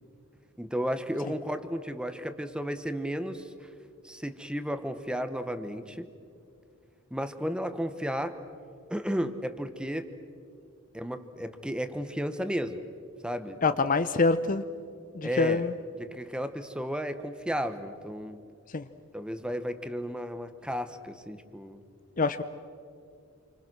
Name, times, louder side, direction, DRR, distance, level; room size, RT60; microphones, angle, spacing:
voice 1, 0.6-3.4 4.0-6.1 7.1-8.4 8.9-10.1 10.9-12.8 13.2-13.6 15.2-15.6 16.0-18.4 19.1-21.8, equal, 5° right, 10 dB, 1.1 m, -33 dB
voice 2, 13.6-14.6 15.1-15.8 18.7-18.9 22.2-22.4, left 3 dB, 40° left, 11 dB, 0.7 m, -25 dB
28.5 x 25.0 x 6.2 m, 2.4 s
head